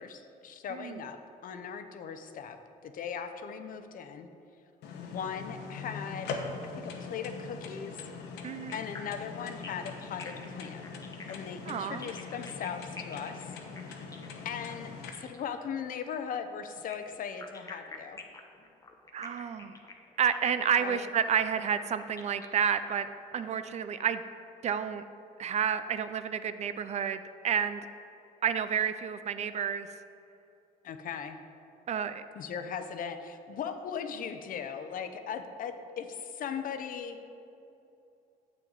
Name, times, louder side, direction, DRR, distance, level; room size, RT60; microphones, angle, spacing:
voice 1, 0.0-2.6 2.8-4.3 5.0-6.4 6.6-7.9 8.7-10.8 11.3-13.4 14.4-18.2 20.8-21.1 30.8-31.4 32.3-37.2, left 7 dB, 55° left, 8 dB, 0.7 m, -38 dB
voice 2, 0.7-1.1 8.4-8.7 11.7-12.1 19.1-19.7 20.2-23.1 23.3-24.2 24.6-25.0 25.4-27.9 28.4-29.9 31.9-32.2, right 8 dB, 40° right, 11 dB, 0.4 m, -30 dB
sound 1, 4.8-15.1, left 4 dB, 85° left, 1.0 m, -42 dB
sound 2, 8.7-15.5 16.7-23.4, left 3 dB, 20° left, 0.9 m, -48 dB
9.0 x 7.7 x 3.9 m, 2.8 s
cardioid pair, 110°, 17 cm